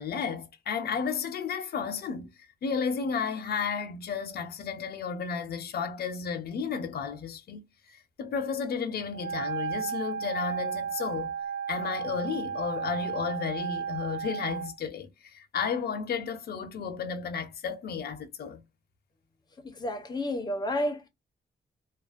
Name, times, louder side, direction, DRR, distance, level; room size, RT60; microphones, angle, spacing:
voice 1, 0.0-2.3 2.6-11.3 11.7-18.6, left 6 dB, 65° left, 0.6 m, -33 dB
Wind instrument woodwind instrument, 9.1-14.7, right 6 dB, 75° right, 0.7 m, -34 dB
voice 2, 19.6-21.1, left 1 dB, 25° left, 0.6 m, -31 dB
2.4 x 2.1 x 2.4 m
wide cardioid pair, 150°, 18 cm